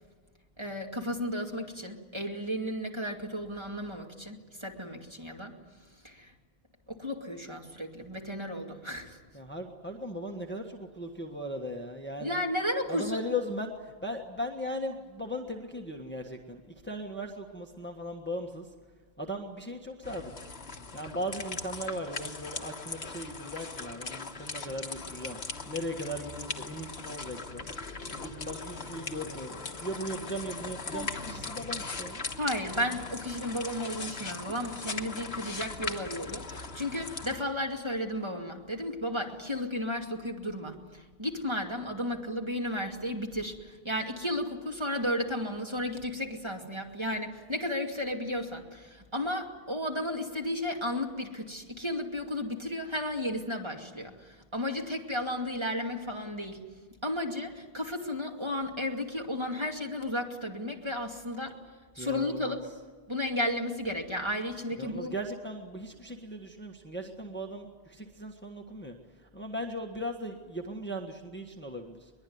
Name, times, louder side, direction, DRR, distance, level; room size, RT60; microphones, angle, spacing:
voice 1, 0.6-5.5 6.0-6.3 6.9-9.2 12.2-13.2 32.4-56.6 57.0-61.6 61.9-62.6 63.1-65.1, left 1 dB, 25° right, 1 dB, 2.5 m, -33 dB
voice 2, 9.3-12.4 12.9-18.7 19.2-20.3 20.9-25.4 25.6-32.2 62.0-62.6 64.8-72.1, equal, 10° left, 2 dB, 1.5 m, -38 dB
sound 1, 20.0-37.4, left 4 dB, 70° left, 1.7 m, -39 dB
22.5 x 21.5 x 9.5 m, 1.4 s
omnidirectional pair, 1.1 m